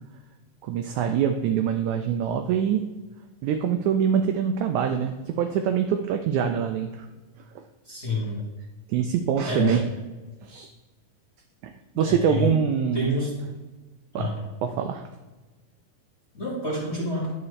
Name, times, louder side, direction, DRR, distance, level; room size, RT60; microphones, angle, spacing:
voice 1, 0.6-2.8 3.4-7.1 8.9-9.8 10.4-10.7 11.6-13.2 14.1-14.3 14.6-15.1, right 8 dB, 85° right, 6 dB, 1.7 m, -24 dB
voice 2, 7.9-8.4 9.4-9.8 11.9-12.5 12.9-13.5 14.1-14.4 16.3-17.3, left 1 dB, 45° left, -6 dB, 0.8 m, -28 dB
11.0 x 5.8 x 3.2 m, 1.2 s
omnidirectional pair, 3.9 m